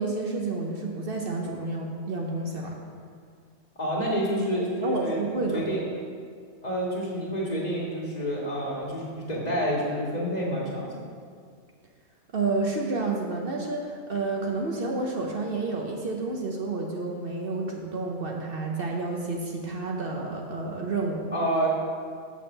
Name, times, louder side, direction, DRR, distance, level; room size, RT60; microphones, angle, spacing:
voice 1, 0.0-2.8 4.8-5.6 12.3-21.3, right 3 dB, 55° right, 0 dB, 0.9 m, -30 dB
voice 2, 3.8-5.2 5.5-5.8 6.6-10.9 21.3-21.7, equal, 35° left, -5 dB, 1.8 m, -28 dB
6.2 x 6.0 x 7.0 m, 2.1 s
omnidirectional pair, 1.2 m